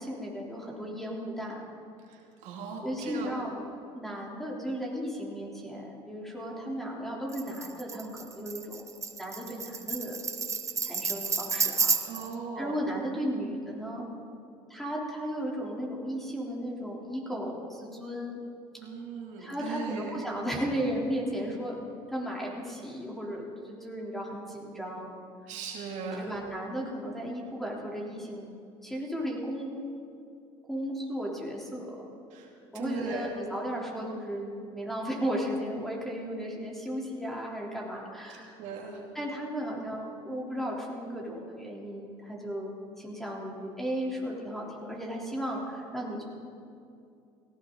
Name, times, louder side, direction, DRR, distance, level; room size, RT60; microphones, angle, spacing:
voice 1, 0.0-1.6 2.8-3.5 3.9-8.9 9.2-10.2 10.8-12.0 12.6-14.1 14.7-18.4 19.4-21.8 22.1-25.1 26.2-28.5 28.8-29.7 30.7-32.0 32.7-38.6 39.1-46.2, equal, ahead, -3 dB, 3.6 m, -35 dB
voice 2, 2.1-3.3 12.1-12.8 18.8-20.2 20.7-20.8 25.5-26.3 32.3-32.5 32.7-33.3 38.6-39.0, right 5 dB, 70° right, -1 dB, 2.7 m, -38 dB
Tambourine, 7.3-12.3, right 5 dB, 25° right, 0.8 m, -31 dB
17.5 x 16.0 x 4.0 m, 2.5 s
supercardioid pair, 85°, 13 cm